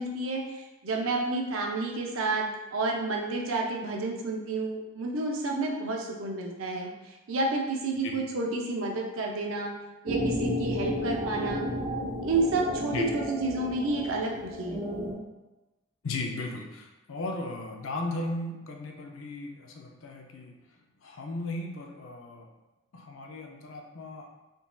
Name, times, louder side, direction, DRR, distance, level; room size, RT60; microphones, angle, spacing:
voice 1, 0.0-6.9 7.3-9.7 10.0-11.7 12.2-14.8, right 2 dB, 80° right, 0 dB, 0.5 m, -30 dB
sound 1, 10.1-15.1, equal, 20° right, 0.5 m, -32 dB
voice 2, 16.0-20.5 21.0-22.5 22.9-24.3, left 2 dB, 75° left, 2 dB, 0.5 m, -36 dB
3.8 x 2.5 x 2.3 m, 1.1 s
head